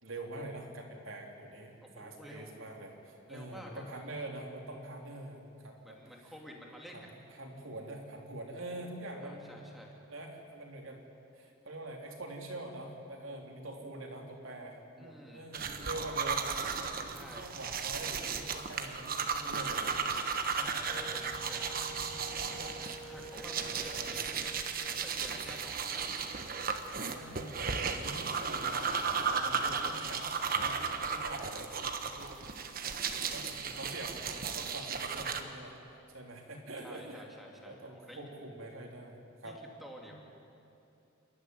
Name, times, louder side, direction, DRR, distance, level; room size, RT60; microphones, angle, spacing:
voice 1, 0.0-6.0 7.4-9.6 10.1-11.0 11.3-16.6 17.0-20.0 20.5-21.4 23.5-24.1 27.1-30.8 31.1-32.5 32.8-35.8 36.1-37.2 37.6-39.6 40.1-40.2, right 1 dB, 75° right, 1 dB, 3.4 m, -45 dB
voice 2, 1.8-2.5 3.3-4.1 5.8-7.1 9.2-10.0 15.0-15.4 17.1-17.5 20.6-21.9 22.7-26.2 31.8-32.4 36.8-38.3 39.4-40.2, equal, ahead, -1 dB, 2.9 m, -51 dB
sound 1, 15.5-35.4, right 5 dB, 45° right, 1.3 m, -35 dB
Wind instrument woodwind instrument, 20.8-26.7, right 1 dB, 20° left, 2.4 m, -50 dB
28.5 x 13.0 x 9.5 m, 2.7 s
head